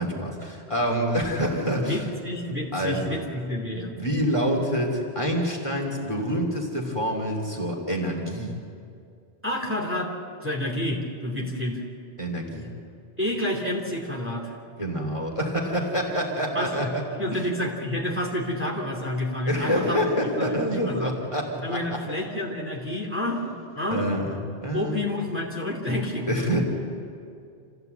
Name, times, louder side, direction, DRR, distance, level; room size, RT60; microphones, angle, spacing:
voice 1, 0.0-2.1 2.4-3.2 3.7-8.6 12.2-12.7 14.8-17.0 17.3-17.4 19.5-22.1 23.9-25.0 26.3-26.6, equal, 30° left, 0 dB, 3.1 m, -27 dB
voice 2, 1.8-3.9 9.4-10.1 10.4-11.8 13.2-14.6 16.5-16.9 17.2-20.0 20.4-21.1 21.6-24.0 24.7-26.3, left 1 dB, 10° right, -1 dB, 2.8 m, -29 dB
27.5 x 15.0 x 8.1 m, 2.4 s
omnidirectional pair, 1.1 m